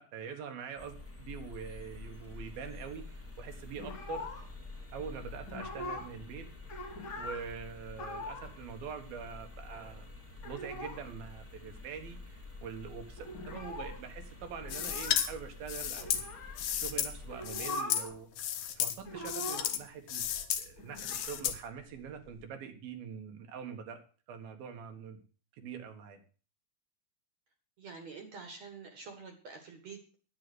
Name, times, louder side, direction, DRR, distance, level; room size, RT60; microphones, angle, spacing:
voice 1, 0.0-4.3 4.9-6.5 7.2-10.1 10.4-16.2 16.7-18.3 18.7-20.3 20.6-24.0 24.3-25.2 25.5-26.2, right 7 dB, 75° right, 6 dB, 3.4 m, -44 dB
sound 1, 0.8-17.5, left 3 dB, 5° left, 1.5 m, -48 dB
sound 2, 3.8-4.7 5.0-5.1 5.4-6.2 6.5-7.4 7.9-8.5 8.8-8.9 9.1-9.9 10.3-11.1 11.4-11.5 11.7-12.3 12.6-12.7 12.9-16.6 17.2-18.2 18.5-19.9 20.2-22.4, left 2 dB, 40° left, 2.7 m, -43 dB
sound 3, 14.7-15.3 15.7-17.1 17.4-18.1 18.4-18.9 19.2-19.8 20.1-20.6 21.0-21.6, left 10 dB, 65° left, 1.9 m, -33 dB
voice 2, 27.8-30.2, right 4 dB, 50° right, 5 dB, 2.7 m, -47 dB
10.5 x 9.7 x 6.2 m, 0.38 s
omnidirectional pair, 4.3 m